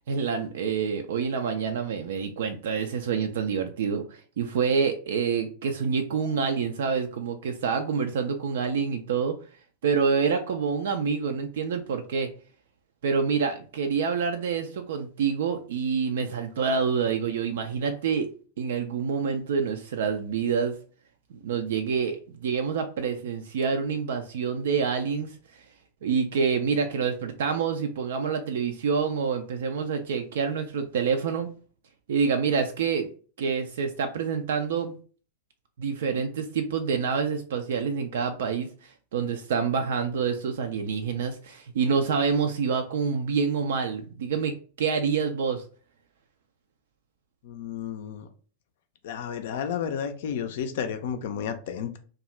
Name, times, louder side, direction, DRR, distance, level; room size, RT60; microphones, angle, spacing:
voice 1, 0.1-9.3 9.8-12.3 13.0-18.3 18.6-20.8 21.4-25.4 26.0-31.5 32.1-33.1 33.4-35.0 35.8-45.6, right 6 dB, 60° right, 6 dB, 0.3 m, -27 dB
voice 2, 47.4-48.3 49.0-52.0, left 8 dB, 55° left, 7 dB, 0.4 m, -32 dB
2.7 x 2.3 x 3.0 m, 0.40 s
figure-of-eight pair, 90°, 0 cm